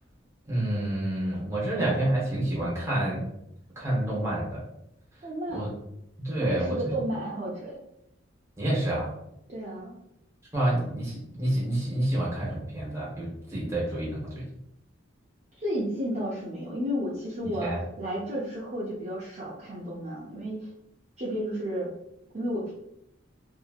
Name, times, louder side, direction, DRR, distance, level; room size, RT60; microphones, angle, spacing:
voice 1, 0.5-3.2 3.8-4.6 5.5-5.7 6.2-6.9 8.6-9.1 10.5-14.2 17.6-17.8, right 1 dB, 15° right, -6 dB, 1.0 m, -28 dB
voice 2, 5.2-5.6 6.4-7.7 9.5-9.9 15.6-20.7 21.2-21.9 22.3-22.7, equal, 35° right, -7 dB, 0.5 m, -32 dB
2.7 x 2.7 x 2.4 m, 0.81 s
head